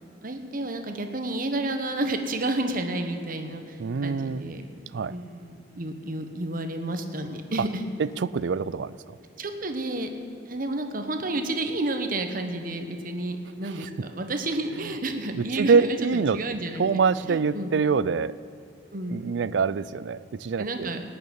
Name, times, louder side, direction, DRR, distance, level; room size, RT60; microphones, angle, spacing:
voice 1, 0.2-4.6 5.1-7.9 9.4-10.1 10.5-17.0 17.3-17.7 18.9-19.5 20.6-21.0, right 2 dB, 50° right, 6 dB, 1.2 m, -31 dB
voice 2, 3.8-4.5 4.9-5.1 8.0-9.2 14.8-14.9 15.3-16.4 16.8-18.3 19.1-21.1, right 5 dB, 75° right, 18 dB, 0.4 m, -25 dB
18.5 x 6.7 x 8.8 m, 2.8 s
head